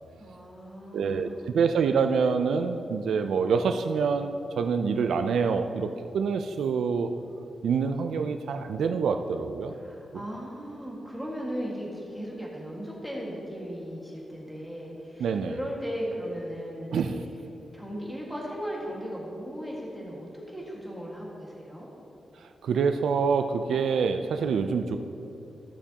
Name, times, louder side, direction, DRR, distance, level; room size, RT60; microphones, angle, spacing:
voice 1, 0.2-1.6 9.8-17.2 17.7-21.9 24.3-24.6, equal, ahead, -4 dB, 1.7 m, -37 dB
voice 2, 0.9-7.1 7.6-9.8 15.2-15.6 16.9-17.2 22.4-25.0, right 5 dB, 90° right, 7 dB, 0.4 m, -26 dB
15.0 x 6.9 x 2.9 m, 2.7 s
wide cardioid pair, 125°, 0 cm